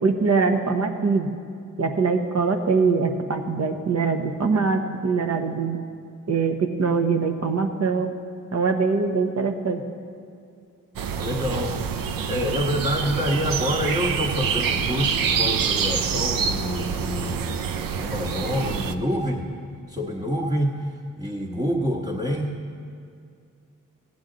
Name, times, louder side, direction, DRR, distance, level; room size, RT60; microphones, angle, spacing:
voice 1, 0.0-1.3 1.8-5.8 6.3-8.1 8.5-9.8, right 4 dB, 50° right, 6 dB, 1.1 m, -23 dB
sound 1, 11.0-19.0, right 6 dB, 80° right, 0.6 m, -26 dB
voice 2, 11.2-12.0 12.3-17.7 18.0-19.5 19.9-20.7 21.2-22.5, equal, 20° right, -3 dB, 1.3 m, -27 dB
15.0 x 9.0 x 3.9 m, 2.3 s
cardioid pair, 50°, 33 cm